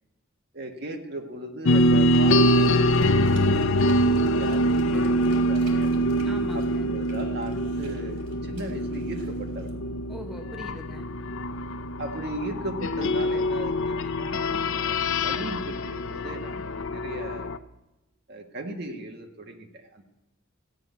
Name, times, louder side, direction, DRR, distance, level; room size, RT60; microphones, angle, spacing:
voice 1, 0.5-5.9 6.5-9.7 12.0-17.5 18.3-20.0, right 1 dB, 50° right, 4 dB, 1.4 m, -38 dB
sound 1, 1.7-17.6, equal, 60° left, 0.5 m, -24 dB
sound 2, 2.1-9.7, right 1 dB, 80° right, 3.0 m, -48 dB
voice 2, 6.2-6.9 10.1-11.1, right 1 dB, ahead, 2 dB, 0.7 m, -41 dB
14.5 x 5.9 x 9.2 m, 0.98 s
head